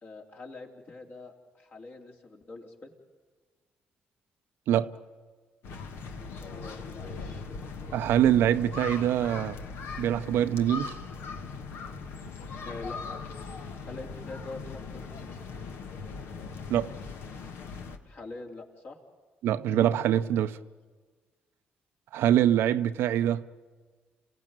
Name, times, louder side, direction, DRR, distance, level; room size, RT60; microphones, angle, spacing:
voice 1, 0.0-2.9 6.3-7.4 12.6-13.0 13.8-15.4 18.0-19.0 20.3-20.4, left 3 dB, 55° left, 3.3 m, -44 dB
sound 1, 5.6-18.0, left 4 dB, 75° left, 1.4 m, -40 dB
voice 2, 7.9-9.6 10.0-11.0 16.7-16.9 19.4-20.6 22.1-23.4, right 11 dB, 75° right, 0.7 m, -24 dB
28.0 x 16.5 x 8.9 m
supercardioid pair, 60°, 4 cm